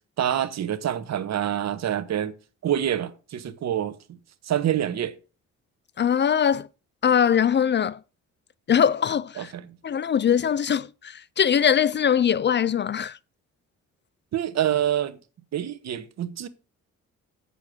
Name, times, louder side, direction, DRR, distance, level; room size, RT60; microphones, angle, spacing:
voice 1, 0.2-2.3 2.6-4.0 4.4-5.2 9.4-9.7 14.3-15.2 15.5-16.5, right 10 dB, 60° right, 1.2 m, -26 dB
voice 2, 6.0-6.7 7.0-8.0 8.7-9.5 9.8-13.2, left 8 dB, 40° left, 0.5 m, -22 dB
8.2 x 6.9 x 6.2 m
cardioid pair, 90°, 30 cm